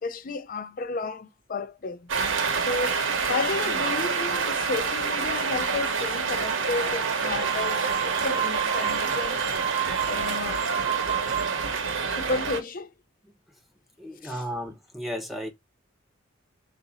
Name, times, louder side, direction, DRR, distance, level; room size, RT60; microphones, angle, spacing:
voice 1, 0.0-2.1 2.5-9.4 10.1-10.7 12.1-12.9 14.2-14.4, left 3 dB, 45° left, 0.5 m, -32 dB
sound 1, 2.1-12.6, right 5 dB, 80° right, 0.8 m, -27 dB
sound 2, 7.4-11.8, right 12 dB, 25° right, 0.4 m, -31 dB
voice 2, 14.0-15.5, equal, ahead, 0.8 m, -34 dB
3.9 x 2.5 x 4.0 m
head